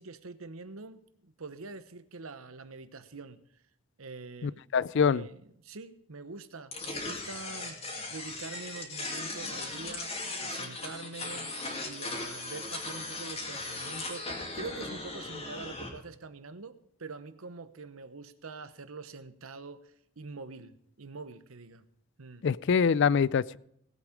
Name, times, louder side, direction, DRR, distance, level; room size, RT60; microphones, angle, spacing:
voice 1, 0.0-3.4 4.0-4.6 4.9-10.1 10.4-11.5 11.8-21.8 22.2-22.5, right 4 dB, 75° right, 13 dB, 1.0 m, -45 dB
voice 2, 4.4-5.2 22.4-23.6, left 6 dB, 60° left, 21 dB, 0.4 m, -25 dB
sound 1, 6.7-15.9, left 2 dB, 30° left, 2.5 m, -38 dB
18.0 x 8.3 x 5.1 m, 0.72 s
head